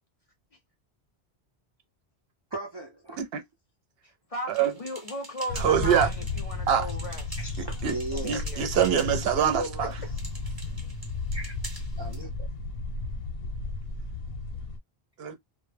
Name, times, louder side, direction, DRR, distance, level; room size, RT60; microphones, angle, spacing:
voice 1, 2.5-3.2 7.4-8.5 9.3-10.1 11.3-11.5 12.0-12.3, right 1 dB, 40° right, 0.3 m, -36 dB
voice 2, 4.3-7.4 8.1-8.6, equal, 40° left, 0.6 m, -36 dB
sound 1, 4.5-12.2, right 1 dB, 25° right, 0.8 m, -46 dB
sound 2, 5.5-14.8, left 3 dB, 70° left, 0.9 m, -34 dB
voice 3, 5.6-6.1 6.7-6.9 7.8-7.9 8.2-9.9 15.2-15.4, right 8 dB, 70° right, 0.8 m, -24 dB
2.1 x 2.1 x 3.2 m
omnidirectional pair, 1.1 m